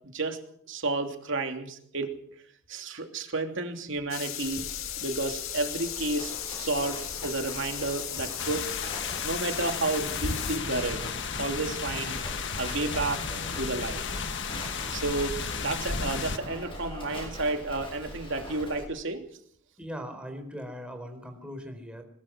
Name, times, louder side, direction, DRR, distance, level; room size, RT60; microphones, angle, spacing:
voice 1, 0.7-2.2 2.7-4.7 5.0-8.7 9.2-11.1 11.4-12.2 12.6-14.0 14.9-19.2, right 2 dB, 65° right, 4 dB, 3.0 m, -31 dB
sound 1, 4.1-10.6, left 11 dB, 85° left, 2.1 m, -36 dB
Livestock farm animals working animals, 4.4-18.8, left 1 dB, 25° left, 7.3 m, -42 dB
sound 2, 8.4-16.4, left 5 dB, 60° left, 1.5 m, -34 dB
voice 2, 19.8-22.0, equal, 5° right, 5 dB, 4.0 m, -39 dB
21.5 x 21.0 x 6.3 m, 0.65 s
head